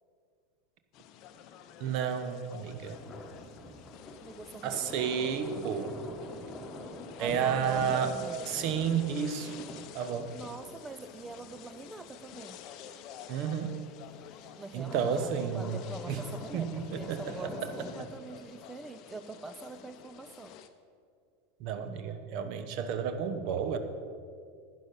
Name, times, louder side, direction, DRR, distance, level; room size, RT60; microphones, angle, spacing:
sound 1, 0.9-20.7, left 9 dB, 45° left, 0.7 m, -50 dB
voice 1, 1.8-3.0 4.6-5.9 7.2-8.1 8.4-9.6 9.9-10.3 13.3-13.7 14.7-15.8 16.1-16.2 16.5-17.5 21.6-23.8, right 7 dB, 45° right, 9 dB, 0.9 m, -31 dB
sound 2, 2.0-13.5 14.0-18.0, left 1 dB, 20° left, 1.2 m, -46 dB
voice 2, 4.2-4.9 7.2-8.5 10.3-12.6 14.6-20.6, right 3 dB, 15° right, 10 dB, 0.4 m, -44 dB
11.5 x 9.5 x 5.3 m, 2.2 s
figure-of-eight pair, 85°, 0 cm